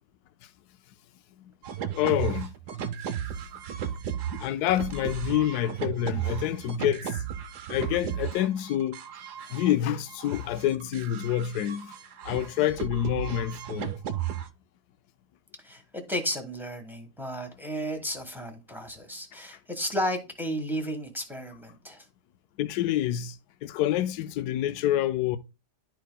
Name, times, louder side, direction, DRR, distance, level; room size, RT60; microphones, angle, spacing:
sound 1, 1.6-14.5, right 9 dB, 85° right, 1.3 m, -35 dB
voice 1, 1.9-2.5 4.4-7.2 7.7-9.0 9.5-11.9 12.2-13.9 22.6-23.3 23.6-25.4, left 12 dB, 80° left, 1.1 m, -27 dB
voice 2, 15.6-22.1, equal, ahead, 1.2 m, -33 dB
11.5 x 4.7 x 2.2 m
omnidirectional pair, 1.7 m